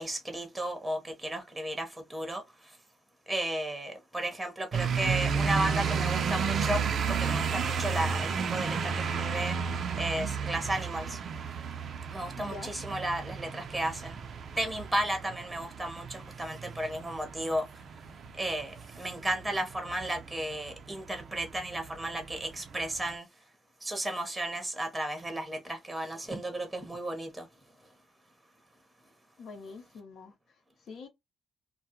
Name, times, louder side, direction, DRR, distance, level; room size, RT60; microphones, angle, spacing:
voice 1, 0.0-2.8 3.3-9.6 10.0-11.2 12.1-14.2 14.5-17.8 18.4-23.3 23.8-27.5, right 1 dB, 10° right, 0.7 m, -34 dB
sound 1, 4.7-23.1, right 6 dB, 60° right, 0.4 m, -33 dB
voice 2, 12.4-12.7 29.4-30.3 30.9-31.1, left 4 dB, 65° left, 0.8 m, -44 dB
2.3 x 2.0 x 2.8 m
cardioid pair, 90°, 0 cm